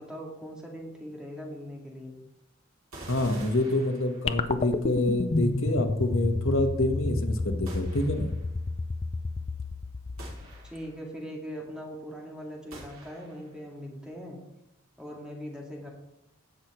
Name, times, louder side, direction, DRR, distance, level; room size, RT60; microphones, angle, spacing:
voice 1, 0.0-2.1 10.6-14.4 15.0-15.9, equal, 5° right, -2 dB, 2.0 m, -40 dB
sound 1, 2.9-4.6 7.7-8.5 10.2-11.1 12.7-13.6, right 1 dB, 75° right, 3.2 m, -46 dB
voice 2, 3.1-8.3, left 1 dB, 75° left, 4 dB, 1.3 m, -27 dB
sound 2, 4.3-10.8, left 3 dB, 30° left, 0.4 m, -31 dB
16.5 x 6.0 x 3.1 m, 0.84 s
head